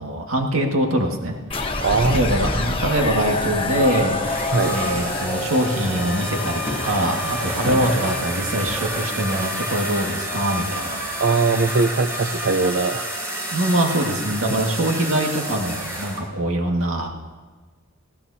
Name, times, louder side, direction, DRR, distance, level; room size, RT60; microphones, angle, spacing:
voice 1, 0.0-1.4 2.1-4.2 4.7-11.0 13.5-17.1, right 1 dB, 80° right, 1 dB, 2.0 m, -23 dB
sound 1, 1.5-8.2, left 2 dB, 25° left, 1.2 m, -27 dB
voice 2, 1.8-2.4 4.5-4.8 7.7-8.0 11.2-13.2, right 3 dB, 60° right, 7 dB, 0.6 m, -21 dB
sound 2, 4.2-16.2, right 1 dB, 15° right, 3.3 m, -30 dB
19.5 x 15.5 x 2.8 m, 1.4 s
head